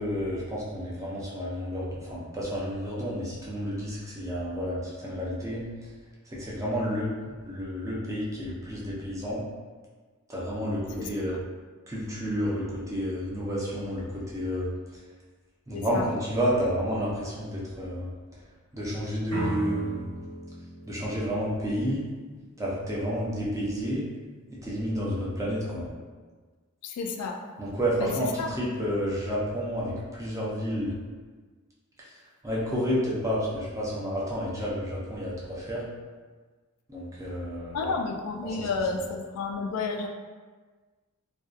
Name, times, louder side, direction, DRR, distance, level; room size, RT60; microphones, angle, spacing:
voice 1, 0.0-5.7 6.3-7.1 7.4-9.4 10.3-11.4 11.9-14.7 15.7-18.1 18.7-20.0 20.9-22.0 22.6-24.0 24.5-25.9 27.6-30.9 32.0-32.1 32.4-35.8 36.9-37.9 38.4-38.7, equal, 15° right, -6 dB, 0.5 m, -30 dB
voice 2, 15.7-16.1 26.8-27.4 28.0-28.1 28.4-28.5 37.7-40.1, left 4 dB, 80° left, 8 dB, 0.3 m, -31 dB
sound 1, 19.3-22.2, right 1 dB, 65° right, 0.9 m, -36 dB
2.6 x 2.2 x 2.4 m, 1.4 s
head